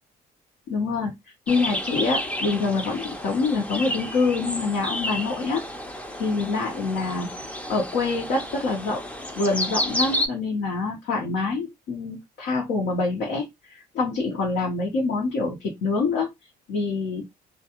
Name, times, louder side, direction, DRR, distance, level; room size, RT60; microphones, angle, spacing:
voice 1, 0.7-1.1 1.5-5.6 6.1-7.3 7.7-9.0 9.4-16.3 16.7-17.2, left 3 dB, 80° left, 1.0 m, -26 dB
sound 1, 1.5-10.3, left 1 dB, 5° left, 0.5 m, -31 dB
2.3 x 2.3 x 2.8 m
cardioid pair, 110°, 17 cm